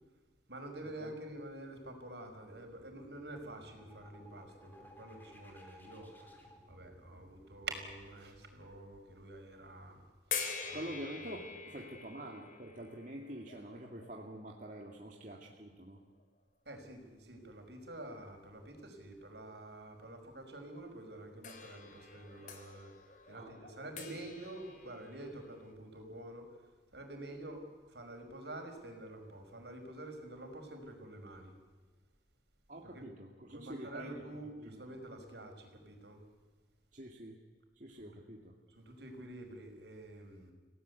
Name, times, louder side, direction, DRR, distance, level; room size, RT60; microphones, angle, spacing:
voice 1, 0.5-6.1 6.7-10.0 10.7-10.8 11.2-11.4 16.7-22.9 23.3-26.5 26.9-27.6 27.9-31.5 32.8-33.0 33.5-36.2 38.0-38.1 38.7-40.5, right 2 dB, 70° right, 4 dB, 5.3 m, -48 dB
sound 1, 2.5-10.1, equal, 10° left, 4.1 m, -60 dB
sound 2, 10.3-15.4 16.2-16.3 21.4-25.7, left 6 dB, 45° left, 3.2 m, -45 dB
voice 2, 10.6-16.0 23.3-23.5 24.1-24.2 32.7-34.2 34.6-34.8 36.9-37.4 37.8-38.5, right 1 dB, 45° right, 0 dB, 2.3 m, -46 dB
29.5 x 18.0 x 8.2 m, 1.4 s
head